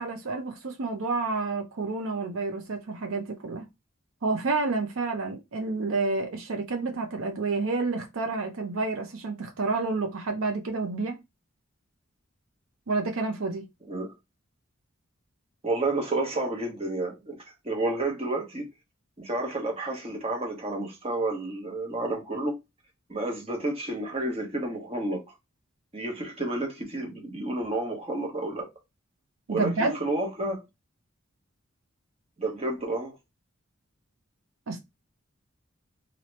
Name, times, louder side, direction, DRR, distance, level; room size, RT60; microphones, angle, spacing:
voice 1, 0.0-3.6 4.2-11.2 12.9-13.6 29.5-30.0 34.7-34.8, right 3 dB, 80° right, 0.6 m, -29 dB
voice 2, 15.6-17.4 17.6-18.7 19.2-22.6 23.1-25.2 25.9-28.7 29.5-30.6 32.4-33.2, right 2 dB, 30° right, 1.0 m, -30 dB
2.8 x 2.7 x 3.1 m
head